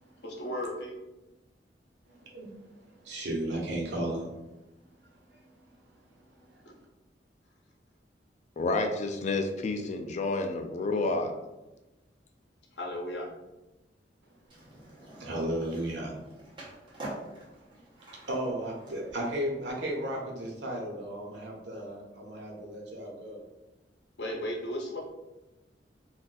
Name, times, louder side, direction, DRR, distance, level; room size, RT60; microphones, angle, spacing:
voice 1, 0.2-0.9 12.7-13.3 24.2-25.0, left 1 dB, 70° left, -1 dB, 0.8 m, -35 dB
voice 2, 2.2-2.5 3.0-4.3 6.3-6.4 15.2-16.1 18.1-23.4, right 1 dB, 80° right, -2 dB, 0.9 m, -34 dB
voice 3, 8.6-11.3, left 3 dB, 40° left, 5 dB, 0.3 m, -29 dB
Skateboard, 14.5-19.7, right 1 dB, 30° right, 1.0 m, -47 dB
2.5 x 2.5 x 3.8 m, 1.0 s
head